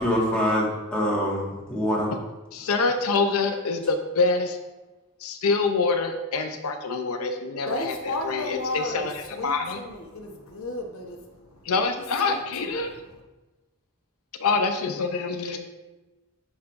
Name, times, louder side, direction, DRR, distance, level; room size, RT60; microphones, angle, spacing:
voice 1, 0.0-2.1, equal, 5° left, -6 dB, 1.7 m, -25 dB
voice 2, 2.5-4.6 5.2-9.1 9.4-9.8 11.7-12.9 14.4-15.6, left 4 dB, 90° left, 6 dB, 0.6 m, -25 dB
voice 3, 7.7-11.7 12.2-13.0, left 1 dB, 70° left, 2 dB, 1.0 m, -34 dB
10.0 x 5.6 x 2.6 m, 1.1 s
head